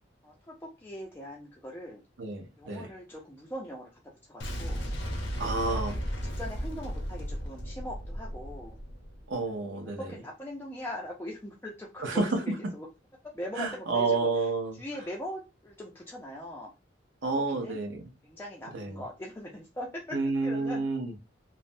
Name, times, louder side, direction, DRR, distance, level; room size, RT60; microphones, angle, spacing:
voice 1, 0.2-2.0 2.6-4.8 5.7-5.9 6.4-8.8 9.2-9.4 10.0-12.3 12.7-12.9 13.2-14.2 14.7-16.7 17.5-17.8 18.2-20.9, left 1 dB, 10° left, 0.4 m, -41 dB
voice 2, 2.2-2.9 5.4-6.0 9.3-10.1 12.0-12.4 13.6-14.8 17.2-18.1 18.7-19.0 20.1-21.1, right 3 dB, 75° right, 0.7 m, -30 dB
Boom, 4.4-9.3, equal, 75° left, 0.7 m, -35 dB
3.2 x 2.0 x 2.5 m
head